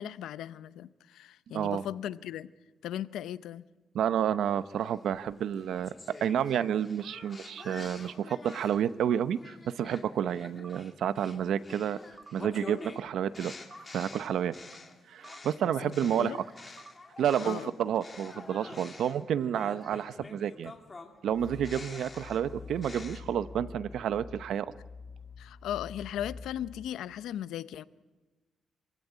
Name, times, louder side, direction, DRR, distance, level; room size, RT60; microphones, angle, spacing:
voice 1, 0.0-2.5 2.8-3.6 15.8-16.4 17.4-17.7 25.4-27.8, left 11 dB, 90° left, 0.7 m, -37 dB
voice 2, 3.9-12.0 12.3-13.5 13.9-14.5 15.1-16.4 17.2-20.7 21.2-24.7, right 9 dB, 70° right, 0.8 m, -30 dB
sound 1, 4.8-8.9 9.4-17.7 18.0-23.2, left 3 dB, 20° left, 2.4 m, -48 dB
sound 2, 7.6-7.8 9.1-9.3 10.6-10.8 12.2-12.4 13.7-13.9 15.2-15.4 16.8-17.0, right 4 dB, 20° right, 0.9 m, -51 dB
sound 3, 21.3-26.9, left 5 dB, 55° left, 2.6 m, -47 dB
25.5 x 16.5 x 9.8 m
cardioid pair, 140°, 0 cm